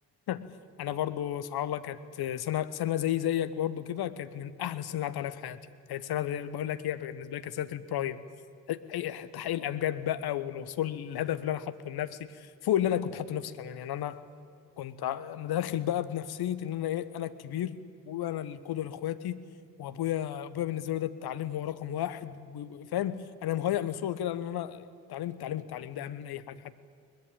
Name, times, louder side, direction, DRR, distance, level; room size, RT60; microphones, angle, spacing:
voice 1, 0.8-5.6 5.9-8.2 8.7-14.2 14.8-17.8 18.1-19.4 19.8-26.8, left 11 dB, 55° left, 13 dB, 1.3 m, -33 dB
22.0 x 20.5 x 8.9 m, 2.2 s
figure-of-eight pair, 45°, 46 cm